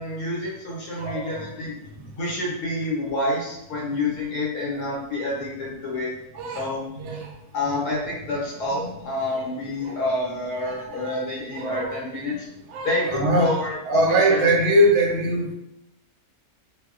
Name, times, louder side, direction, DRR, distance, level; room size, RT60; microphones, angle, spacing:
voice 1, 0.0-1.7 2.2-6.1 6.5-6.8 7.5-12.3 12.8-14.5, left 2 dB, 80° left, -5 dB, 1.3 m, -28 dB
voice 2, 0.9-1.5 6.3-6.7 6.9-7.3 7.6-7.7 8.3-8.4 8.7-8.9 9.3-9.4 9.8-10.0 10.6-11.2 11.5-12.0 12.7-15.5, right 1 dB, 65° right, 0 dB, 0.7 m, -23 dB
2.8 x 2.0 x 2.3 m, 0.82 s
omnidirectional pair, 1.6 m